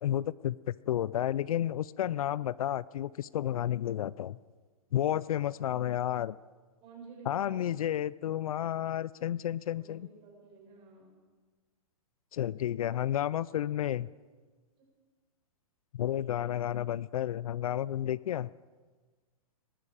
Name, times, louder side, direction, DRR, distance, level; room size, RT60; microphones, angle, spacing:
voice 1, 0.0-4.4 4.9-6.4 7.3-10.1 12.3-14.1 15.9-18.5, left 11 dB, 70° left, 21 dB, 0.4 m, -31 dB
voice 2, 6.8-7.7 9.7-11.2 13.5-13.9 14.8-14.9 16.1-16.8, right 4 dB, 30° right, -1 dB, 5.5 m, -53 dB
21.0 x 11.5 x 5.0 m, 1.4 s
hypercardioid pair, 145°, 19 cm